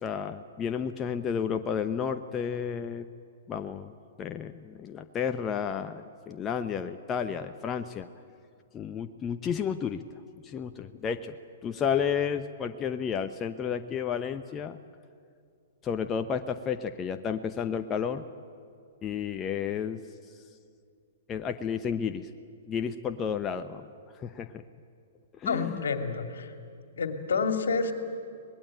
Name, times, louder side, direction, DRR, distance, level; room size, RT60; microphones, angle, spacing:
voice 1, 0.0-3.1 3.5-3.9 4.2-8.1 8.7-10.0 10.4-11.4 11.6-14.8 15.8-18.2 19.0-20.0 21.3-22.3 22.7-23.9 24.2-24.6 25.4-25.8, left 7 dB, 25° left, 7 dB, 0.9 m, -32 dB
voice 2, 25.5-26.5 27.0-27.9, left 5 dB, 75° left, 6 dB, 2.4 m, -29 dB
24.0 x 20.0 x 9.0 m, 2.4 s
hypercardioid pair, 120°, 0 cm